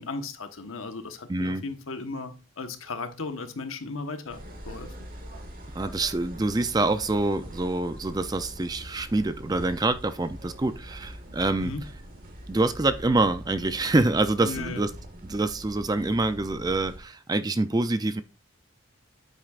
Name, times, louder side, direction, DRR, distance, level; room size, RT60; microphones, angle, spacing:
voice 1, 0.0-4.4 4.6-4.9 11.6-11.8 14.4-14.8, left 3 dB, 80° left, 1.2 m, -36 dB
voice 2, 1.3-1.6 5.7-11.7 12.5-14.9 15.2-18.2, right 2 dB, 20° right, 0.4 m, -26 dB
sound 1, 4.3-17.0, equal, 40° right, 1.7 m, -43 dB
9.1 x 8.3 x 2.4 m
head